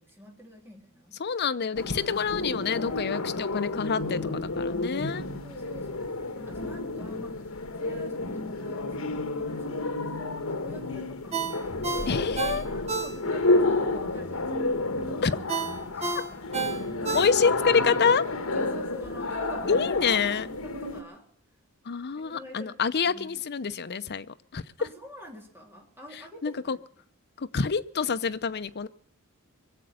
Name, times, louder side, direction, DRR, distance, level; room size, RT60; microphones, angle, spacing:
voice 1, 0.0-1.2 3.9-4.3 5.2-11.6 12.0-12.3 12.5-14.4 15.0-15.4 15.9-16.2 16.7-17.3 18.5-20.1 20.5-21.3 22.2-23.4 24.8-26.8, right 1 dB, 10° right, 0 dB, 3.4 m, -46 dB
voice 2, 1.2-5.3 12.1-12.6 15.2-15.3 17.1-18.2 19.7-20.5 21.9-24.3 24.5-24.9 26.1-26.8 27.4-28.9, left 6 dB, 50° left, 12 dB, 0.7 m, -27 dB
sound 1, 1.8-21.0, left 2 dB, 70° left, 1.4 m, -30 dB
Ringtone, 11.3-13.6 13.9-14.1 15.5-17.7 18.1-18.2, right 4 dB, 30° right, 1.4 m, -31 dB
23.5 x 7.9 x 6.3 m, 0.62 s
head